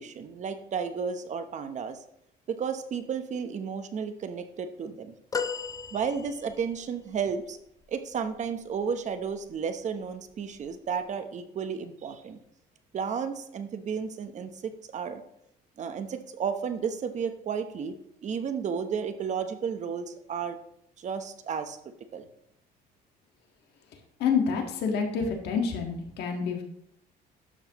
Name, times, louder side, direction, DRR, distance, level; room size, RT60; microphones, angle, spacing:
voice 1, 0.0-2.0 2.5-5.1 5.9-7.6 7.9-12.4 12.9-15.2 15.8-17.9 18.2-20.6 21.0-21.8 22.1-22.3, right 6 dB, 45° right, 8 dB, 0.9 m, -33 dB
sound 1, 5.3-6.7 9.1-9.3 10.6-10.7, left 5 dB, 20° left, 0.5 m, -34 dB
voice 2, 24.2-26.6, left 6 dB, 80° left, 2 dB, 1.6 m, -28 dB
12.0 x 6.3 x 3.0 m, 0.76 s
cardioid pair, 110°, 17 cm